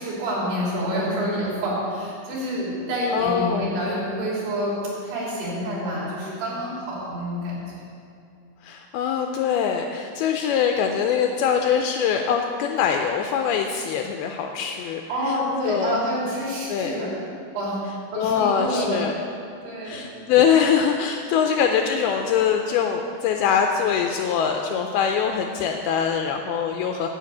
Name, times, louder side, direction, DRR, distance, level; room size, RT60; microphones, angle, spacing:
voice 1, 0.0-4.7 5.0-7.6 15.1-17.1 17.5-17.8 18.1-19.0 19.6-20.0 21.3-21.4, equal, 65° right, -7 dB, 5.1 m, -27 dB
voice 2, 3.1-3.7 8.6-15.4 15.7-16.0 16.7-17.0 18.1-19.2 19.8-27.1, left 7 dB, 85° left, 4 dB, 2.3 m, -23 dB
10.0 x 5.9 x 8.3 m, 2.5 s
omnidirectional pair, 4.9 m